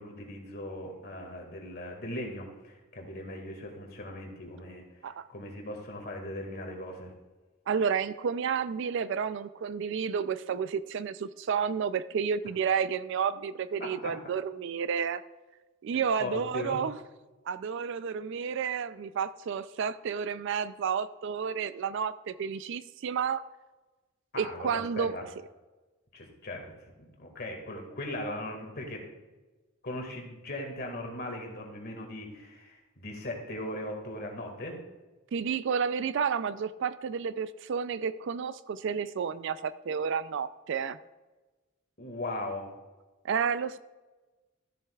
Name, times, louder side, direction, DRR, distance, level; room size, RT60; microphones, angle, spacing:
voice 1, 0.0-4.8 5.3-7.1 13.8-14.2 16.2-16.8 24.3-25.2 26.1-26.7 27.0-29.1 29.8-34.8 42.0-42.7, left 1 dB, 50° left, 1 dB, 1.9 m, -39 dB
voice 2, 7.7-15.2 15.8-17.0 17.5-23.4 24.4-25.2 35.3-41.0 43.2-43.8, right 6 dB, 60° right, 15 dB, 0.3 m, -31 dB
13.5 x 7.9 x 2.3 m, 1.2 s
head